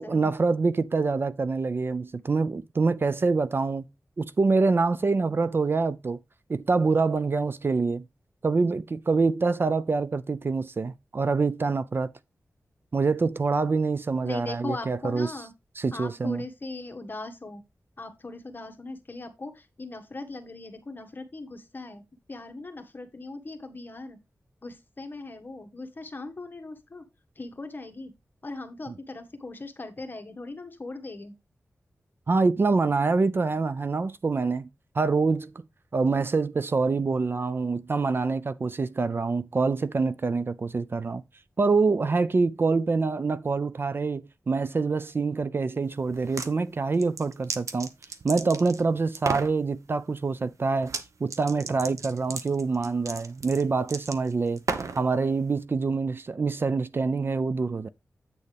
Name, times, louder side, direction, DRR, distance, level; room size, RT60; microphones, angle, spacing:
voice 1, 0.0-3.8 4.2-6.2 6.5-8.0 8.4-12.1 12.9-15.3 15.8-16.4 32.3-34.7 34.9-35.5 35.9-41.2 41.6-47.9 48.2-50.9 51.2-54.6 55.0-57.9, right 4 dB, 45° right, 0.4 m, -25 dB
voice 2, 14.2-15.5 15.9-17.6 18.0-22.0 22.3-24.2 24.6-27.0 27.4-28.1 28.4-31.3, left 2 dB, 40° left, 1.3 m, -39 dB
sound 1, 46.1-46.5 46.9-48.8 49.1-49.5 50.8-51.0 51.3-55.0, right 4 dB, 75° right, 1.0 m, -34 dB
8.4 x 6.6 x 3.3 m
wide cardioid pair, 90°, 5 cm